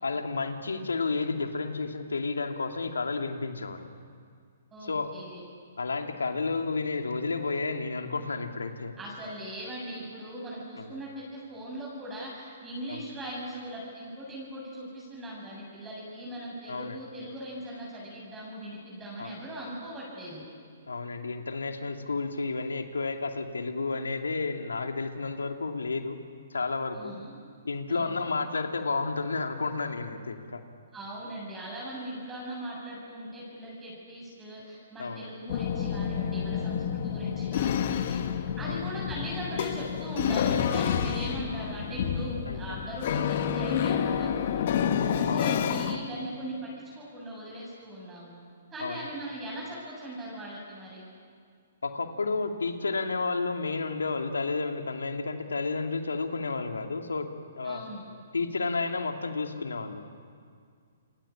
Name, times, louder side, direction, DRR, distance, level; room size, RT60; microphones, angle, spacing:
voice 1, 0.0-3.9 4.8-5.1 5.8-8.9 10.8-11.0 12.9-13.1 16.7-17.0 19.2-19.3 20.9-26.2 26.5-27.1 27.6-30.6 35.0-35.3 38.6-38.8 42.5-42.8 45.3-45.5 48.8-49.1 51.8-57.3 57.6-57.8 58.3-60.0, left 3 dB, 90° left, 5 dB, 2.6 m, -31 dB
voice 2, 4.7-5.4 9.0-20.5 26.9-27.4 27.9-28.3 30.9-38.2 38.6-44.8 45.1-48.4 48.7-51.0 57.6-58.1, right 1 dB, 15° right, -5 dB, 7.9 m, -39 dB
sound 1, 35.5-46.0, left 8 dB, 55° left, 1.9 m, -29 dB
28.0 x 22.5 x 8.7 m, 2.1 s
hypercardioid pair, 135°, 0 cm